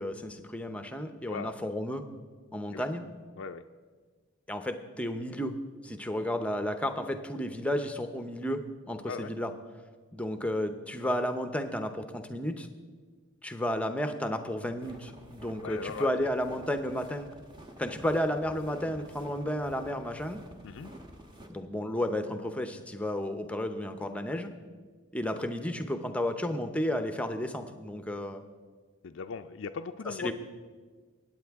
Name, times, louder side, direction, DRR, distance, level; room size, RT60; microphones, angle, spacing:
voice 1, 0.0-2.0 2.5-3.0 4.5-5.6 5.8-9.5 10.1-12.7 13.4-17.3 17.8-20.4 21.5-24.5 25.1-28.4 30.0-30.3, left 1 dB, 5° left, 7 dB, 0.6 m, -32 dB
sound 1, 14.8-21.5, equal, 20° right, 1.1 m, -50 dB
voice 2, 15.6-16.1 20.6-20.9 24.3-24.5 29.0-30.3, left 5 dB, 65° left, 7 dB, 0.4 m, -38 dB
23.5 x 9.1 x 3.5 m, 1.5 s
head